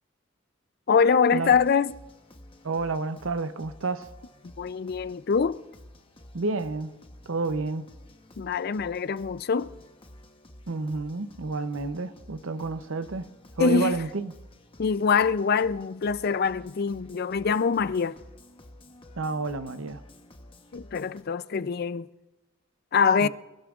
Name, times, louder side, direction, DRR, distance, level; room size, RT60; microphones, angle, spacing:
voice 1, 0.9-1.9 4.4-5.6 8.4-9.7 13.6-13.9 14.8-18.2 20.7-22.1 22.9-23.3, left 6 dB, 45° left, 0.4 m, -24 dB
sound 1, 1.4-21.2, left 1 dB, 25° left, 0.9 m, -51 dB
voice 2, 2.6-4.1 6.3-6.9 7.3-7.9 10.7-14.3 19.2-20.0 23.2-23.3, right 3 dB, 70° right, 0.7 m, -30 dB
28.0 x 15.5 x 2.4 m
head